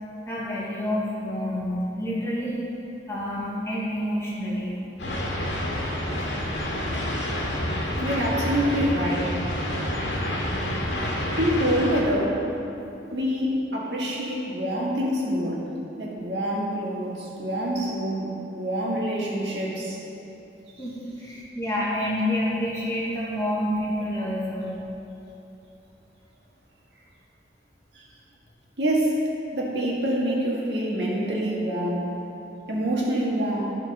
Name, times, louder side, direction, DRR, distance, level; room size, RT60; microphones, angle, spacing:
voice 1, 0.3-2.6 3.1-4.8 20.8-24.7, equal, 15° left, -7 dB, 2.1 m, -28 dB
sound 1, 5.0-12.0, equal, 85° left, 2.1 m, -28 dB
voice 2, 8.0-9.3 11.4-12.4 13.1-15.6 16.0-20.0 27.9-28.0 28.8-29.2 29.5-32.1 32.7-33.7, equal, 75° right, -4 dB, 1.9 m, -26 dB
12.0 x 6.1 x 5.4 m, 2.9 s
head